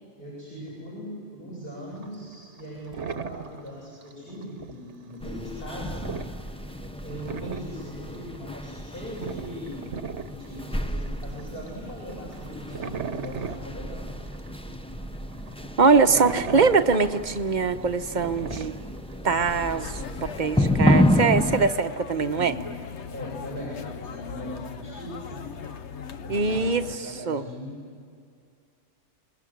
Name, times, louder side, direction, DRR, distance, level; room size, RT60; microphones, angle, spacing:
voice 1, 0.2-6.0 7.0-9.9 10.2-14.2 22.3-22.7 23.1-25.5 26.2-27.8, equal, 45° left, -5 dB, 7.9 m, -39 dB
sound 1, 1.9-14.8 15.3-20.1, right 6 dB, 60° right, 1.3 m, -38 dB
sound 2, 5.2-21.7, left 1 dB, 5° left, 0.5 m, -30 dB
voice 2, 15.8-18.7 19.2-22.5 26.3-27.4, right 4 dB, 40° right, 9 dB, 1.0 m, -23 dB
sound 3, 19.3-27.0, left 6 dB, 60° left, 1.1 m, -39 dB
27.0 x 21.5 x 9.5 m, 2.4 s
omnidirectional pair, 1.4 m